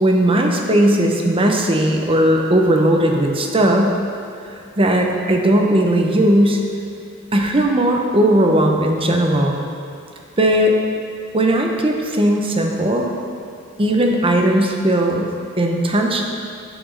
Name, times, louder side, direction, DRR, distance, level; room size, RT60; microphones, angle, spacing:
voice 1, 0.0-3.9 4.8-6.6 7.3-9.6 10.4-10.7 11.3-13.1 13.8-15.3 15.6-16.2, right 1 dB, 25° right, 2 dB, 0.8 m, -17 dB
8.0 x 6.1 x 6.3 m, 2.5 s
head